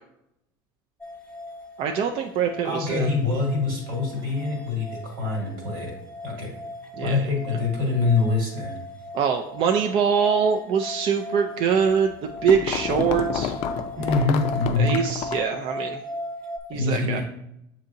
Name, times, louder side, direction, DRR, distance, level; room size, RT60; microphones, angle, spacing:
sound 1, 1.0-16.6, left 1 dB, 10° left, 0.9 m, -37 dB
voice 1, 1.8-3.1 7.0-7.3 9.1-13.5 14.8-16.0 16.7-17.2, right 7 dB, 55° right, 4 dB, 0.4 m, -23 dB
voice 2, 2.6-5.9 6.2-6.5 7.0-8.7 14.0-14.9 16.7-17.2, left 3 dB, 90° right, -1 dB, 1.8 m, -25 dB
sound 2, 11.8-15.6, left 9 dB, 60° left, 0.4 m, -30 dB
7.0 x 2.8 x 2.6 m, 0.79 s
hypercardioid pair, 80°, 11 cm